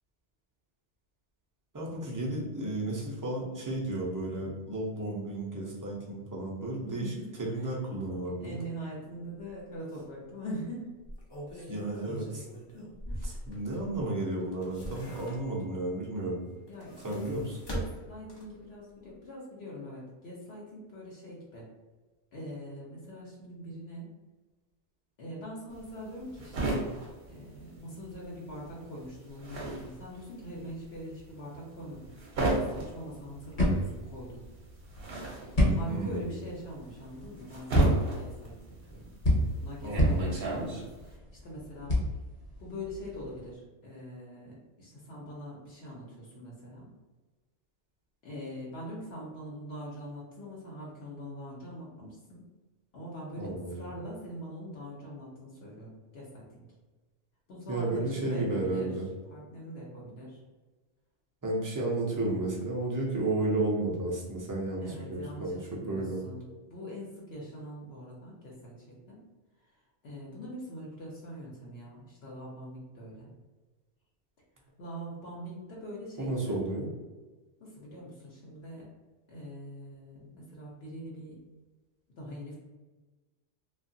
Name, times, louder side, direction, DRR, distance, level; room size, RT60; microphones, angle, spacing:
voice 1, 1.7-7.1 7.4-8.6 11.5-12.4 13.2-16.4 17.0-17.4 35.9-36.3 39.8-40.3 53.4-53.8 57.7-59.1 61.4-66.3 76.2-76.9, right 2 dB, 30° right, -4 dB, 0.4 m, -33 dB
voice 2, 6.9-7.7 8.4-10.9 12.7-13.4 16.7-17.2 17.7-21.7 22.3-24.1 25.2-26.9 27.3-32.1 32.4-34.5 35.7-39.1 39.6-42.0 42.6-46.9 48.2-52.5 52.9-56.7 57.5-58.9 59.3-60.4 64.8-69.2 70.0-73.3 74.8-76.6 77.6-78.9 79.3-81.4 82.2-82.6, equal, 65° left, -4 dB, 0.9 m, -43 dB
sound 1, 9.4-9.5 9.9-10.0 11.0-14.0 14.4-15.7 16.6-18.7 19.1-19.2, equal, 30° left, 0.5 m, -41 dB
sound 2, 25.7-28.3 28.5-41.1, right 2 dB, 60° right, 0.9 m, -35 dB
sound 3, 32.8-43.5, equal, 45° left, 1.0 m, -30 dB
2.8 x 2.4 x 2.6 m, 1.3 s
omnidirectional pair, 1.2 m